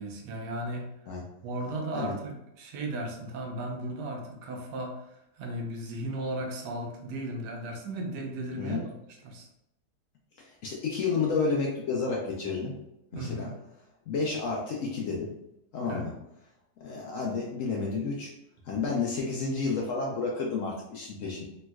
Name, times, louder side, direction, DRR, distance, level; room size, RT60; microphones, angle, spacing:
voice 1, 0.0-0.9 1.4-5.0 5.4-8.9 9.2-9.5 13.1-13.5 15.8-16.1, right 1 dB, 80° right, 1 dB, 1.3 m, -35 dB
voice 2, 8.5-8.9 10.6-12.7 13.1-13.5 14.1-15.3 15.7-16.1 16.8-18.3 18.7-21.4, left 4 dB, 65° left, -2 dB, 0.8 m, -30 dB
3.4 x 3.0 x 2.2 m, 0.84 s
omnidirectional pair, 1.8 m